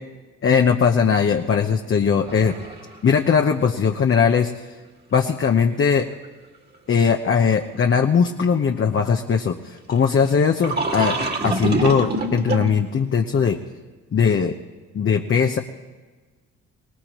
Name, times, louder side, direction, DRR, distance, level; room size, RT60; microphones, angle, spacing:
voice 1, 0.4-2.5 3.0-4.5 5.1-6.1 6.9-11.2 11.4-13.6 14.1-14.6 14.9-15.6, left 6 dB, 45° left, 3 dB, 1.0 m, -19 dB
sound 1, 2.2-3.1 3.4-3.5 6.2-6.3 8.2-8.3 8.4-8.5 10.3-10.4 10.6-12.8, right 3 dB, 35° right, 2.1 m, -25 dB
24.0 x 18.5 x 3.1 m, 1.3 s
cardioid pair, 90°, 30 cm